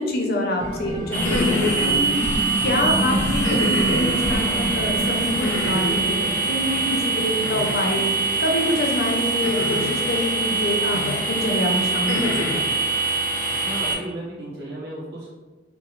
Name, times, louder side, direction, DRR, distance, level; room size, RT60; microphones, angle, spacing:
voice 1, 0.0-12.6, left 1 dB, 50° left, 1 dB, 0.6 m, -26 dB
sound 1, 0.6-11.9 12.3-12.4, right 1 dB, 40° right, 0.9 m, -30 dB
sound 2, 1.1-2.0 3.4-4.1 5.4-6.1 7.4-8.0 9.4-10.1 10.9-11.3 11.8-12.6, left 2 dB, 90° left, 0.7 m, -27 dB
sound 3, 1.1-13.9, right 4 dB, 10° left, 0.5 m, -24 dB
voice 2, 13.5-15.3, right 1 dB, 60° right, -6 dB, 1.3 m, -34 dB
4.8 x 2.1 x 3.1 m, 1.3 s
head